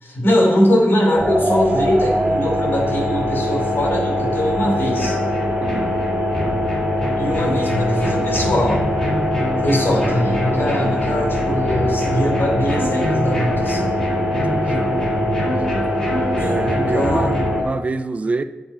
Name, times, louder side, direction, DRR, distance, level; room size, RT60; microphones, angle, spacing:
voice 1, 0.0-5.2 7.2-8.8 9.6-13.9 16.2-17.5, left 1 dB, 75° left, 2.9 m, -21 dB
sound 1, 1.1-17.6, equal, 75° right, 1.9 m, -22 dB
sound 2, 4.9-17.6, equal, 20° left, 1.8 m, -27 dB
voice 2, 14.3-15.0 15.4-15.8 16.4-18.4, right 3 dB, 35° right, 0.3 m, -26 dB
7.2 x 5.3 x 5.9 m
wide cardioid pair, 145°, 4 cm